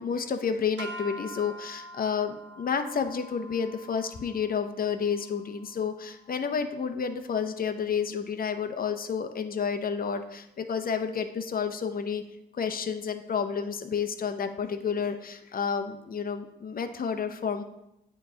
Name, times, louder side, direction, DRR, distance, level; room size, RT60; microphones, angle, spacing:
voice 1, 0.0-12.2 12.5-17.6, left 6 dB, 45° left, 8 dB, 0.8 m, -30 dB
sound 1, 0.8-7.1, equal, 65° right, 0.9 m, -46 dB
9.2 x 3.1 x 3.8 m, 0.88 s
supercardioid pair, 60°, 20 cm